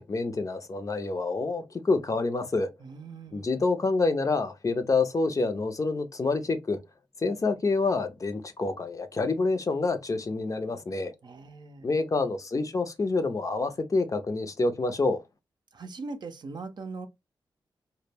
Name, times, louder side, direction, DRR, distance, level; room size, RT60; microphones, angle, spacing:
voice 1, 0.0-2.7 3.3-6.8 7.2-11.1 11.8-15.2, left 3 dB, 40° left, 0.5 m, -27 dB
voice 2, 2.8-3.5 11.2-11.9 15.7-17.1, right 3 dB, 55° right, 0.5 m, -40 dB
2.1 x 2.1 x 3.2 m
cardioid pair, 55°, 9 cm